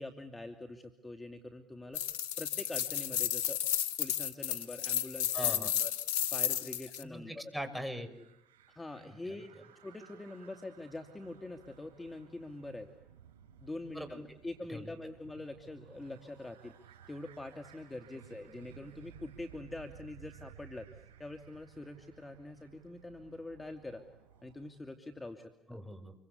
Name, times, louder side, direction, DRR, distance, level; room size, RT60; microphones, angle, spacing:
voice 1, 0.0-3.6 4.0-5.9 6.3-7.5 8.7-9.5 9.8-12.9 13.6-16.8 17.1-24.0 24.4-25.5, left 2 dB, 20° left, 6 dB, 2.9 m, -44 dB
sound 1, 2.0-7.0, left 10 dB, 80° left, 1.3 m, -33 dB
voice 2, 5.3-5.7 7.0-8.1 9.3-9.4 13.9-14.2 14.7-14.9 25.7-26.1, equal, 5° right, 7 dB, 6.8 m, -41 dB
sound 2, 7.7-24.7, right 9 dB, 80° right, 5.5 m, -58 dB
28.0 x 24.5 x 8.3 m, 0.85 s
hypercardioid pair, 55°, 0 cm